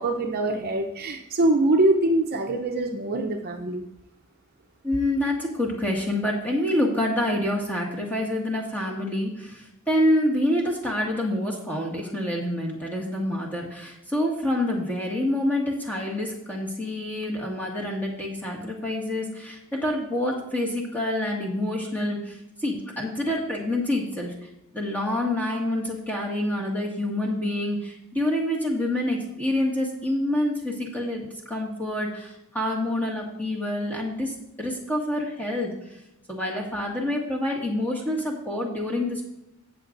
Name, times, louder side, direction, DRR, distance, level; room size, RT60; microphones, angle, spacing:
voice 1, 0.0-3.8, right 2 dB, 45° right, 3 dB, 0.7 m, -23 dB
voice 2, 4.8-24.3 24.7-35.7 36.3-39.3, left 1 dB, 10° left, -3 dB, 1.9 m, -27 dB
17.0 x 6.7 x 2.6 m, 0.89 s
head